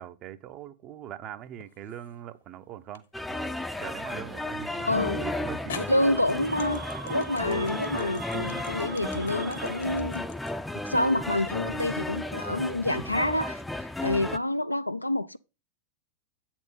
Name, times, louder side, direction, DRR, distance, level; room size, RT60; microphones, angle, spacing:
voice 1, 0.0-3.1 3.8-5.9, right 11 dB, 35° right, 0.7 m, -41 dB
sound 1, 1.6-2.2 2.9-3.1 4.9-5.0 5.7-11.9, left 8 dB, 65° left, 1.0 m, -44 dB
sound 2, 3.1-14.4, left 2 dB, 5° left, 0.5 m, -34 dB
voice 2, 4.8-5.3 5.8-6.8 7.1-10.3 10.8-13.6 14.0-15.4, left 1 dB, 85° left, 0.4 m, -27 dB
sound 3, 6.1-10.2, right 7 dB, 70° right, 0.8 m, -42 dB
8.4 x 4.5 x 5.5 m
figure-of-eight pair, 90°, 0 cm